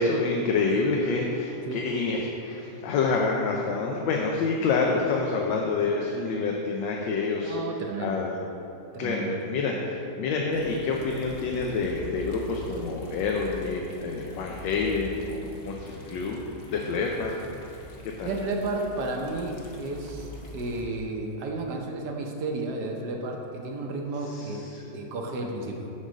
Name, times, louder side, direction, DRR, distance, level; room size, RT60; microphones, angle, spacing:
voice 1, 0.0-7.6 8.0-8.4 9.0-16.4 16.7-17.4 18.0-18.3 24.2-24.8, left 4 dB, 80° left, 0 dB, 1.4 m, -27 dB
voice 2, 7.4-8.2 8.9-9.6 18.2-24.6 24.9-25.9, right 2 dB, 65° right, 2 dB, 1.3 m, -32 dB
sound 1, 10.5-20.9, left 2 dB, 50° left, 0.9 m, -43 dB
7.8 x 3.8 x 6.2 m, 2.8 s
omnidirectional pair, 2.0 m